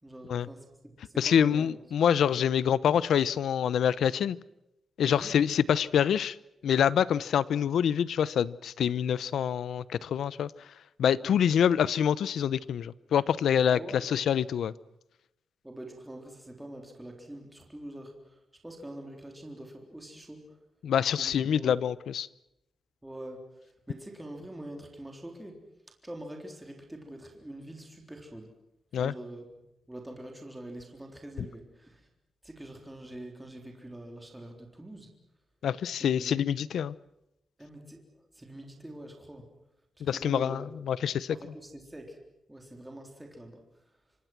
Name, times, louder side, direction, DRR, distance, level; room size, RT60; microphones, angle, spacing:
voice 1, 0.0-1.8 5.0-5.3 11.2-11.5 13.7-14.1 15.6-20.6 21.2-21.8 23.0-25.6 26.0-28.5 28.9-29.6 29.9-32.0 32.4-35.1 36.0-36.3 37.6-39.5 40.1-40.7 41.3-42.2 42.5-43.6, right 1 dB, 5° right, 3.8 m, -44 dB
voice 2, 1.2-4.4 5.0-6.4 6.6-10.5 11.0-14.7 20.8-22.3 28.9-29.1 35.6-36.9 40.0-41.4, left 8 dB, 90° left, 0.8 m, -26 dB
28.0 x 24.5 x 6.1 m
wide cardioid pair, 170°, 0 cm